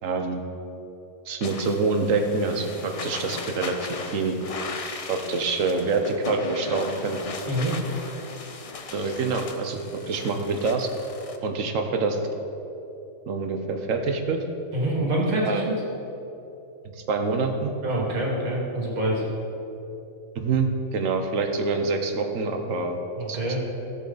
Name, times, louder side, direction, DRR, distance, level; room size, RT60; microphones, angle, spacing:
voice 1, 0.0-0.4 1.2-4.4 5.1-7.2 8.9-10.9 11.4-12.2 13.3-14.4 15.5-15.7 17.0-17.7 20.3-23.0 23.3-23.4, right 4 dB, 70° right, 5 dB, 1.3 m, -26 dB
sound 1, 1.4-11.4, left 4 dB, 50° left, 0.4 m, -37 dB
voice 2, 7.4-7.8 14.7-15.7 17.8-19.2 23.2-23.6, right 1 dB, 85° right, -3 dB, 2.5 m, -26 dB
14.0 x 7.6 x 4.0 m, 2.8 s
omnidirectional pair, 1.5 m